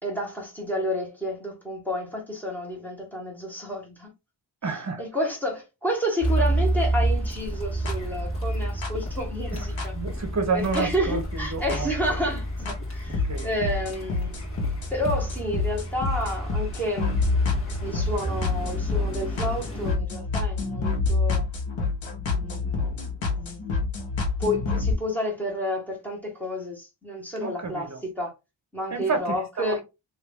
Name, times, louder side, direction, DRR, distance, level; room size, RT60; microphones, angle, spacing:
voice 1, 0.0-4.1 4.7-9.9 10.5-14.4 14.9-17.1 17.8-21.4 22.3-23.6 24.4-28.3 28.7-29.8, equal, 5° left, 1.7 m, -30 dB
voice 2, 4.6-5.0 9.5-9.6 9.9-11.9 13.1-13.5 27.4-28.0 28.9-29.8, right 4 dB, 35° right, 1.1 m, -30 dB
Car, 6.2-20.0, right 1 dB, 30° left, 1.8 m, -30 dB
sound 1, 7.9-8.0 8.8-8.9 9.8-9.9 10.7-10.8 11.7-11.8 12.7-12.8 13.1-24.9, left 4 dB, 75° left, 1.4 m, -27 dB
3.1 x 2.9 x 3.5 m
wide cardioid pair, 100°, 46 cm